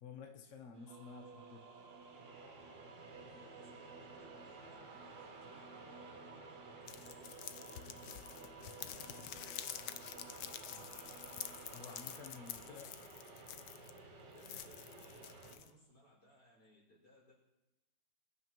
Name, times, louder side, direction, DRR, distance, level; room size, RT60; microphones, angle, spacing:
voice 1, 0.0-1.6 10.7-10.9 11.7-12.9, left 5 dB, 55° left, 3 dB, 1.1 m, -52 dB
sound 1, 0.7-15.6, right 3 dB, 80° right, 2.5 m, -55 dB
sound 2, 0.9-12.2, right 4 dB, 55° right, 1.1 m, -56 dB
voice 2, 3.2-8.4 8.8-10.1 12.5-12.9 14.3-17.3, equal, 70° left, -6 dB, 6.1 m, -64 dB
sound 3, 6.9-14.0 14.4-15.7, left 11 dB, 85° left, 1.3 m, -48 dB
24.0 x 9.9 x 3.0 m, 0.95 s
omnidirectional pair, 1.8 m